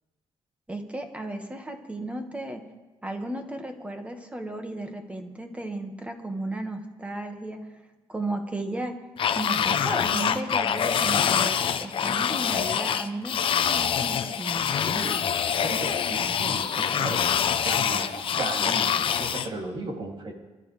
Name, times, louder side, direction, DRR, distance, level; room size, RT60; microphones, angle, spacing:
voice 1, 0.7-2.6 3.0-7.6 8.1-9.0 9.3-14.7, right 2 dB, 10° right, 4 dB, 1.8 m, -34 dB
sound 1, 9.2-19.5, left 8 dB, 55° left, 0.8 m, -25 dB
voice 2, 14.7-17.2 17.6-20.3, right 2 dB, 50° right, 0 dB, 2.9 m, -35 dB
25.5 x 12.5 x 3.4 m, 1.2 s
cardioid pair, 115°, 11 cm